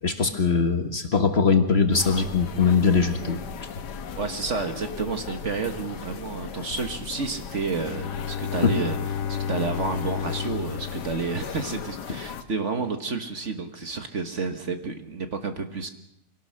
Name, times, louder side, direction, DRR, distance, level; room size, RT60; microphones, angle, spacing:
voice 1, 0.0-3.4 8.6-8.7, left 5 dB, 40° left, 6 dB, 1.7 m, -21 dB
sound 1, 1.9-12.4, left 7 dB, 80° left, 1.7 m, -38 dB
voice 2, 4.1-9.0 9.3-15.9, right 4 dB, 45° right, 7 dB, 1.6 m, -30 dB
Bowed string instrument, 7.7-12.0, left 7 dB, 60° left, 1.3 m, -32 dB
25.0 x 18.0 x 6.4 m, 0.79 s
omnidirectional pair, 1.8 m